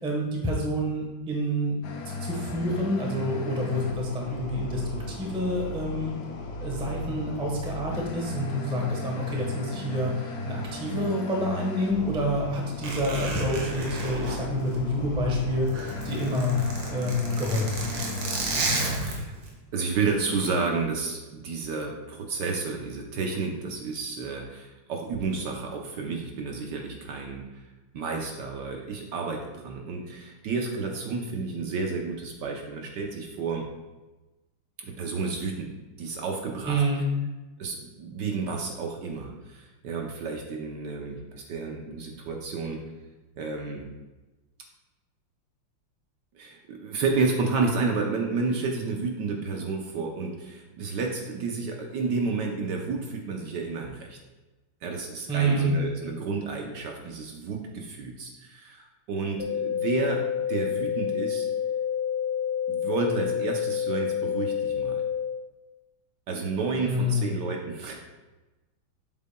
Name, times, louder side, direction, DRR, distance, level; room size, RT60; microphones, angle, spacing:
voice 1, 0.0-1.8 2.0-4.8 5.1-6.1 6.6-16.6 16.9-17.9 36.6-37.0 55.3-55.7 66.8-67.3, equal, 5° right, -1 dB, 0.6 m, -28 dB
sound 1, 1.8-18.9, left 1 dB, 65° left, 0.9 m, -36 dB
Zipper (clothing), 12.8-15.2 15.6-19.5 20.2-20.5, right 2 dB, 85° right, 2.1 m, -32 dB
voice 2, 19.7-27.6 27.9-33.6 34.8-35.7 36.0-36.8 37.6-42.8 43.4-43.9 46.3-54.2 54.8-60.2 60.5-61.5 62.7-65.0 66.3-67.9, right 4 dB, 65° right, 1 dB, 1.2 m, -31 dB
sound 2, 59.4-65.4, left 9 dB, 30° left, 2.3 m, -28 dB
7.6 x 7.3 x 2.2 m, 1.1 s
omnidirectional pair, 2.3 m